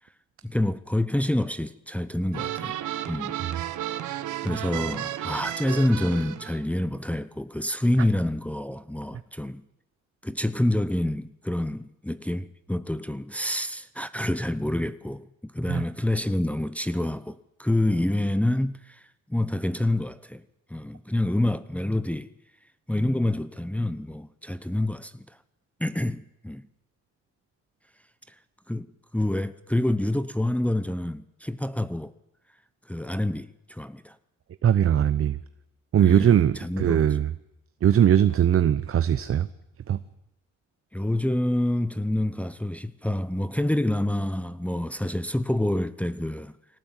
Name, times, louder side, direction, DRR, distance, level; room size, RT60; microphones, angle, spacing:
voice 1, 0.4-2.7 3.1-3.7 4.1-9.6 10.2-19.0 19.3-20.4 20.7-22.3 22.9-25.3 25.8-26.7 28.7-32.1 32.9-34.2 36.0-37.1 40.9-46.5, left 1 dB, 5° left, 0.9 m, -27 dB
sound 1, 2.3-6.6, right 12 dB, 85° right, 1.5 m, -33 dB
voice 2, 34.6-35.4 35.9-37.3 37.8-39.5 39.9-40.0, right 9 dB, 45° right, 0.9 m, -20 dB
23.0 x 18.0 x 9.1 m
cardioid pair, 90°, 30 cm